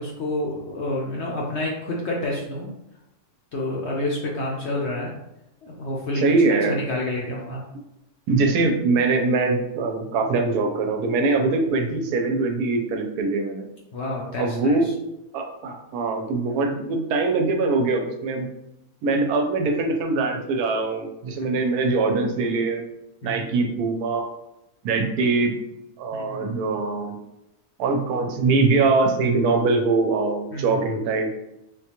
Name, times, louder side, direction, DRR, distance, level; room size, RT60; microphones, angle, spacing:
voice 1, 0.0-2.7 3.5-5.1 5.6-6.2 6.7-7.6 13.9-14.9 21.4-21.5 23.2-23.4 26.1-26.6 30.5-30.8, left 1 dB, 65° left, -3 dB, 0.7 m, -29 dB
voice 2, 6.2-6.8 8.3-13.7 14.4-14.9 15.3-18.5 19.0-22.8 23.2-24.3 24.8-25.5 26.0-27.2 27.8-31.3, right 3 dB, 85° right, 3 dB, 1.1 m, -22 dB
3.6 x 2.2 x 2.9 m, 0.89 s
omnidirectional pair, 1.6 m